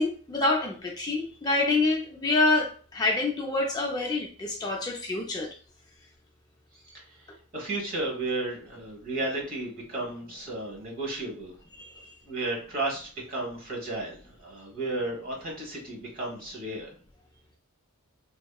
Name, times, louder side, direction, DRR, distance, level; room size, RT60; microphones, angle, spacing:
voice 1, 0.0-5.5 11.7-12.1, left 2 dB, 20° left, 0.4 m, -27 dB
voice 2, 6.7-11.6 12.2-16.9, right 2 dB, 40° right, 1.2 m, -34 dB
3.5 x 2.1 x 2.2 m
head